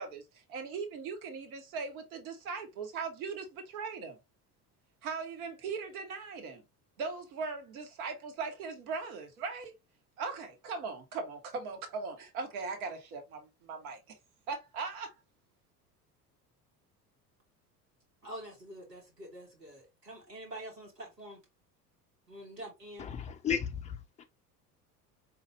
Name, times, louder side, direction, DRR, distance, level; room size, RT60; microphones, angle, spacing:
voice 1, 0.0-4.2 5.0-6.6 7.0-9.7 10.2-14.0 14.5-15.1, right 4 dB, 65° right, 1.2 m, -39 dB
voice 2, 18.2-21.4 22.3-23.1, right 1 dB, 90° right, 1.2 m, -46 dB
voice 3, 23.1-24.2, left 8 dB, 15° left, 0.3 m, -34 dB
4.0 x 2.4 x 3.0 m
figure-of-eight pair, 70°, 47 cm